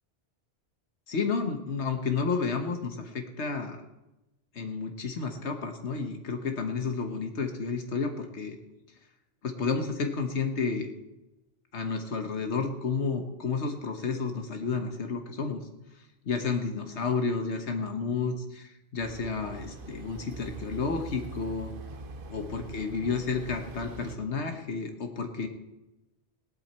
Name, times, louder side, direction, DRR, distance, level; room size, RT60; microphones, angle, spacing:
voice 1, 1.1-3.8 4.5-8.6 9.4-10.9 11.7-15.6 16.0-21.7 22.3-25.5, left 4 dB, 85° left, 4 dB, 1.4 m, -31 dB
sound 1, 19.0-24.2, right 3 dB, 55° right, 1.1 m, -43 dB
17.5 x 11.5 x 4.4 m, 1.0 s
omnidirectional pair, 1.1 m